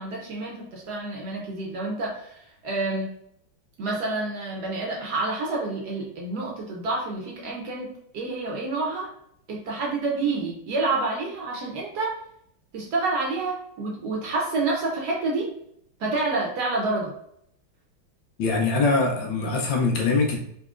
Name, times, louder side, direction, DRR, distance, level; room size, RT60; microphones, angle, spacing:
voice 1, 0.0-3.1 3.8-9.1 9.5-12.1 12.7-15.5 16.0-17.1, right 3 dB, 65° right, -2 dB, 1.1 m, -28 dB
voice 2, 18.4-20.4, left 3 dB, 75° left, 1 dB, 1.4 m, -23 dB
4.0 x 2.8 x 2.4 m, 0.71 s
omnidirectional pair, 2.1 m